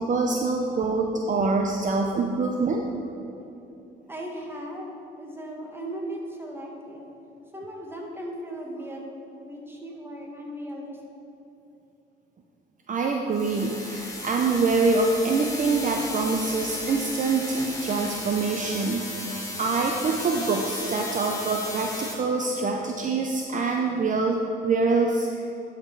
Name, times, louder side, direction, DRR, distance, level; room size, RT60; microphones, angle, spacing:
voice 1, 0.0-2.8 12.9-24.4 24.6-25.4, right 3 dB, 40° right, 1 dB, 0.6 m, -25 dB
voice 2, 4.1-7.1 7.5-9.0 9.5-11.0, right 1 dB, 10° right, -1 dB, 1.6 m, -37 dB
sound 1, 13.3-22.1, left 1 dB, 15° left, 1.8 m, -35 dB
10.5 x 5.0 x 4.7 m, 2.9 s
cardioid pair, 90°, 20 cm